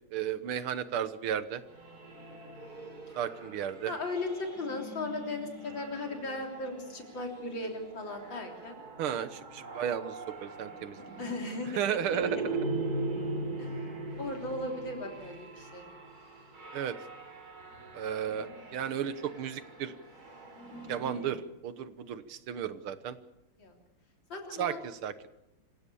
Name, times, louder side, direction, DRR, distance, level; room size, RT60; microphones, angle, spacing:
voice 1, 0.1-1.6 3.2-3.9 9.0-11.0 11.8-12.4 16.7-17.0 17.9-19.9 20.9-23.2 24.6-25.3, right 9 dB, 90° right, 13 dB, 2.0 m, -34 dB
sound 1, 1.6-21.5, right 2 dB, 45° right, 4.4 m, -41 dB
voice 2, 3.8-8.7 11.0-12.2 13.6-13.7 14.2-15.9 23.6-23.7 24.3-24.8, left 2 dB, 60° left, 2 dB, 4.3 m, -37 dB
26.0 x 16.5 x 7.0 m, 0.87 s
omnidirectional pair, 2.3 m